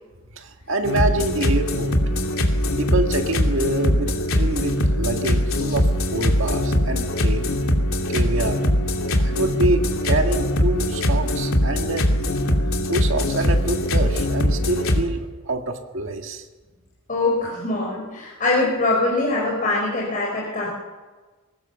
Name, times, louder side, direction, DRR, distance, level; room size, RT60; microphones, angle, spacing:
voice 1, 0.3-2.0 2.4-7.5 8.1-8.6 9.2-12.1 12.9-16.5, right 2 dB, 65° right, 4 dB, 1.9 m, -26 dB
sound 1, 0.8-15.0, left 1 dB, 90° left, 2.5 m, -21 dB
voice 2, 17.1-20.7, left 2 dB, 40° left, -3 dB, 4.7 m, -23 dB
22.0 x 19.0 x 7.0 m, 1.3 s
head